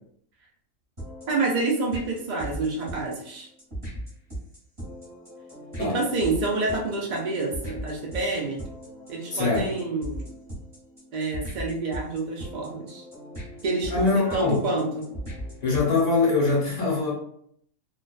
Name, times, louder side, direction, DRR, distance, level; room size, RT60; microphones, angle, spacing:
sound 1, 1.0-16.2, equal, 25° right, 0.9 m, -39 dB
voice 1, 1.3-3.5 5.8-8.6 9.1-10.2 11.1-13.0 13.6-15.0, right 3 dB, 70° right, -1 dB, 0.4 m, -28 dB
voice 2, 9.3-9.7 13.9-14.6 15.6-17.1, left 3 dB, 40° left, -4 dB, 0.7 m, -23 dB
2.3 x 2.3 x 2.3 m, 0.66 s
omnidirectional pair, 1.4 m